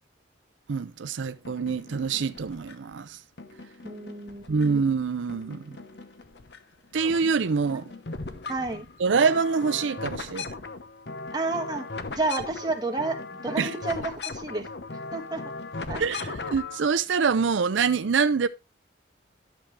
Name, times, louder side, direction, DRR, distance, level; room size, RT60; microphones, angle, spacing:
voice 1, 0.7-3.2 4.5-5.8 6.9-7.9 9.0-10.5 13.6-13.7 16.0-18.5, right 5 dB, 90° right, 0.5 m, -25 dB
sound 1, 1.4-2.9 3.4-5.0 5.3-6.6 6.9-16.8, left 3 dB, 65° left, 0.9 m, -38 dB
voice 2, 3.8-4.8 7.7-7.8 8.5-8.9 11.3-11.9 12.1-13.2 13.4-14.7 15.1-15.4 15.9-16.0, right 3 dB, 20° right, 1.8 m, -30 dB
11.0 x 7.3 x 3.2 m
head